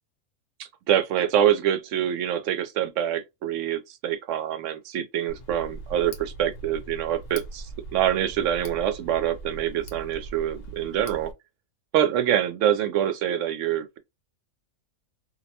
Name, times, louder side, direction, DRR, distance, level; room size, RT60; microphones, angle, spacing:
voice 1, 0.6-11.3 11.9-14.0, right 10 dB, 70° right, 0.8 m, -25 dB
Tick, 5.3-11.3, right 2 dB, 65° left, 1.0 m, -41 dB
2.6 x 2.1 x 2.7 m
omnidirectional pair, 1.5 m